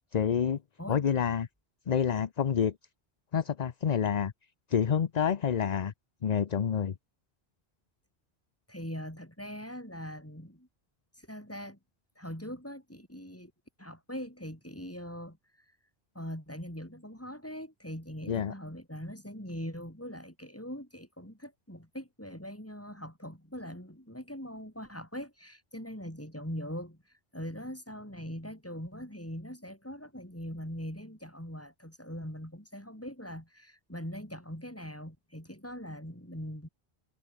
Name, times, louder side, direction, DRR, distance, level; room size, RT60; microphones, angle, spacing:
voice 1, 0.1-0.6 0.9-1.5 1.9-2.7 3.3-4.3 4.7-5.9 6.2-6.9 18.3-18.5, left 7 dB, 45° left, 0.7 m, -28 dB
voice 2, 8.7-10.7 11.2-11.8 12.2-13.5 13.8-15.4 16.1-27.0 27.3-36.7, equal, 15° left, 6.4 m, -41 dB
omnidirectional pair, 1.1 m